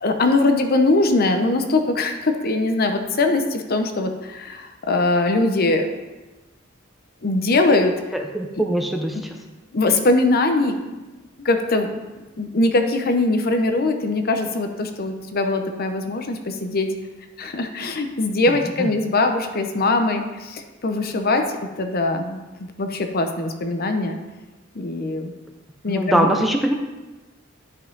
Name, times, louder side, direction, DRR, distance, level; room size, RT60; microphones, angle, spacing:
voice 1, 0.0-5.9 7.2-7.9 9.7-10.8 11.4-11.9 12.4-16.9 17.4-21.4 21.8-24.2 24.7-25.3 25.8-26.3, left 2 dB, 50° left, 6 dB, 0.8 m, -21 dB
voice 2, 8.3-9.2 18.8-18.9 25.9-26.7, right 1 dB, ahead, 2 dB, 0.5 m, -21 dB
10.5 x 5.5 x 3.9 m, 1.2 s
head